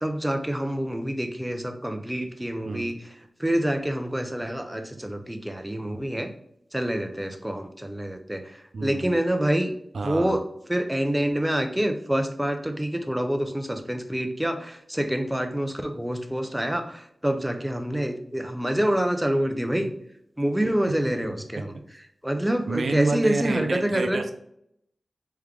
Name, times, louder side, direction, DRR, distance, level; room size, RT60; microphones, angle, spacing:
voice 1, 0.0-3.0 3.4-6.3 6.7-9.7 10.0-10.4 10.7-19.9 20.4-21.7 22.2-24.2, right 1 dB, 10° right, 6 dB, 0.4 m, -27 dB
voice 2, 8.7-9.2 9.9-10.4 20.9-21.0 22.7-24.3, right 3 dB, 90° right, 6 dB, 0.4 m, -29 dB
3.5 x 3.3 x 3.5 m, 0.71 s
wide cardioid pair, 110°, 0 cm